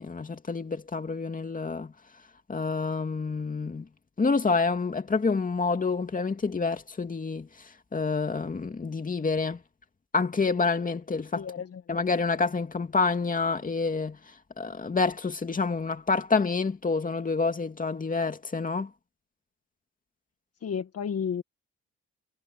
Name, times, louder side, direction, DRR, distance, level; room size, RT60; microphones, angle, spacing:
voice 1, 0.0-1.9 2.5-3.9 4.2-9.6 10.1-11.5 11.9-18.9, left 4 dB, 25° left, 2.5 m, -28 dB
voice 2, 11.3-11.8 20.6-21.4, left 7 dB, 55° left, 1.7 m, -32 dB
cardioid pair, 90°, 30 cm